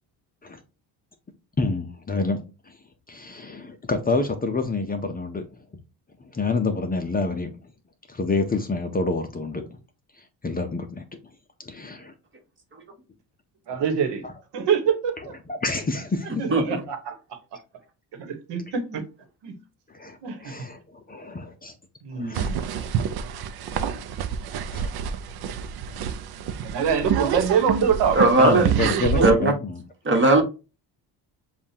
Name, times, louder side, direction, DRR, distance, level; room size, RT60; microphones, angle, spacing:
voice 1, 1.6-2.4 3.1-5.4 6.3-7.5 8.1-9.6 10.4-11.0 11.7-12.1 14.2-14.3 15.6-16.3 19.9-20.2 20.4-20.8 21.1-21.7 22.1-22.5 24.7-24.9 28.4-29.8, left 3 dB, 20° left, 0.6 m, -27 dB
voice 2, 13.7-14.2 14.5-15.2 16.4-17.2 18.1-19.0 19.4-19.5 20.2-20.5 22.0-22.6 26.6-28.2 28.5-29.3, right 7 dB, 75° right, 1.2 m, -25 dB
sound 1, 22.3-29.3, right 7 dB, 60° right, 0.6 m, -28 dB
voice 3, 28.1-28.7 29.2-29.5 30.0-30.4, right 2 dB, 30° right, 1.3 m, -17 dB
7.2 x 2.4 x 2.7 m
cardioid pair, 120°, 42 cm